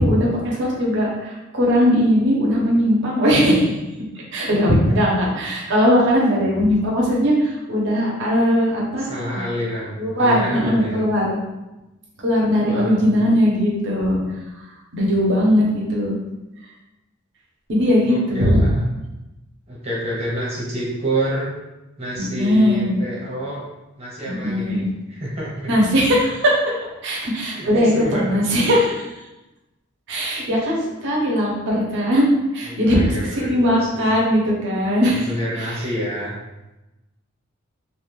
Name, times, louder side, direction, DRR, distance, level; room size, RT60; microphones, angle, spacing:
voice 1, 0.0-3.8 4.3-9.4 10.0-11.4 12.2-14.2 14.9-16.1 17.7-18.6 22.2-23.0 24.2-24.9 25.7-26.6 27.0-29.0 30.1-32.3 32.5-35.3 35.5-35.8, equal, 60° right, -4 dB, 0.8 m, -19 dB
voice 2, 9.0-11.0 12.6-13.2 18.1-18.8 19.7-21.5 22.0-23.6 24.0-25.7 27.5-28.7 32.7-34.0 35.1-36.4, equal, 30° right, -6 dB, 1.0 m, -28 dB
2.7 x 2.3 x 3.2 m, 1.0 s
head